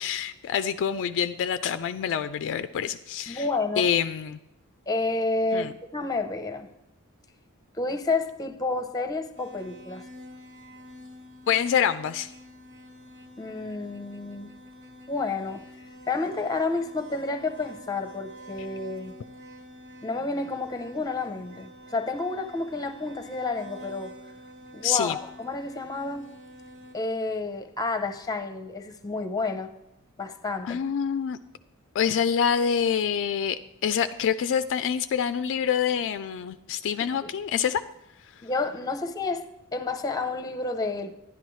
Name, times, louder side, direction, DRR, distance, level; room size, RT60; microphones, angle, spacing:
voice 1, 0.0-3.5 3.8-4.4 5.5-5.7 11.5-12.3 24.8-25.2 30.6-31.4 31.9-37.8, left 8 dB, 60° left, 11 dB, 0.3 m, -26 dB
voice 2, 3.3-3.9 4.9-6.7 7.7-10.1 13.4-14.5 15.1-15.6 16.1-19.2 20.0-24.1 24.7-26.3 26.9-29.7 30.2-30.8 37.2-37.3 38.4-39.4 39.7-41.1, left 3 dB, 15° left, 8 dB, 0.7 m, -30 dB
sound 1, 9.3-26.9, equal, 55° right, 1.4 m, -47 dB
11.5 x 10.5 x 3.1 m, 0.88 s
head